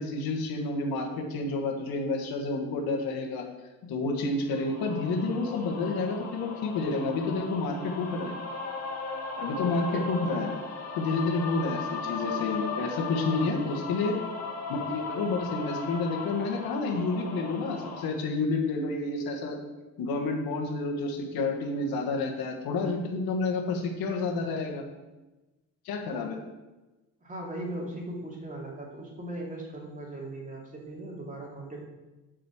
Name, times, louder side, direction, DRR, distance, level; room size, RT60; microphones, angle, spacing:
voice 1, 0.0-3.4 3.8-8.4 9.4-10.5 10.9-14.1 14.7-19.6 20.0-24.8 25.8-26.4, left 3 dB, 90° left, 2 dB, 1.5 m, -29 dB
sound 1, 4.5-18.1, left 4 dB, 50° left, 1.6 m, -37 dB
voice 2, 13.2-13.6 27.2-31.8, right 1 dB, 20° right, -2 dB, 2.3 m, -39 dB
7.7 x 5.1 x 7.2 m, 1.1 s
cardioid pair, 125°, 36 cm